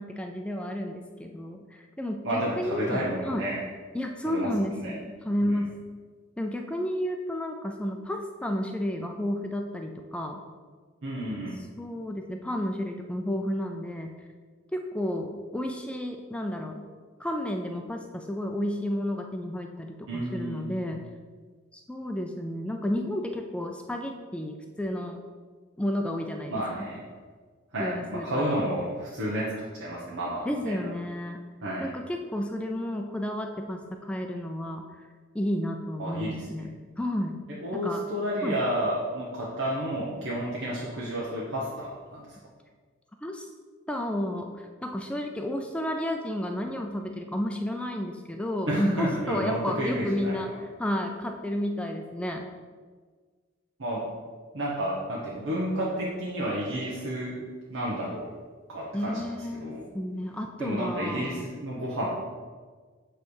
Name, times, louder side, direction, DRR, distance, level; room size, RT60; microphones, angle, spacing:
voice 1, 0.0-3.4 3.9-5.7 6.4-10.4 11.8-14.1 14.7-16.9 17.2-21.0 21.7-25.2 25.8-26.9 27.8-28.6 30.4-31.4 31.8-34.9 35.3-36.7 37.0-37.4 37.7-38.0 38.4-38.6 43.2-43.5 43.9-52.4 58.9-61.4, left 1 dB, 5° left, 3 dB, 0.4 m, -32 dB
voice 2, 2.2-3.6 4.2-4.9 5.4-5.6 11.0-11.6 20.1-20.9 26.5-27.0 27.7-30.8 31.6-31.9 36.0-36.5 37.5-42.3 48.7-50.4 53.8-54.0 54.5-57.4 57.7-58.3 58.7-59.9 60.6-62.2, equal, 85° right, -6 dB, 1.2 m, -31 dB
8.1 x 3.3 x 6.4 m, 1.5 s
head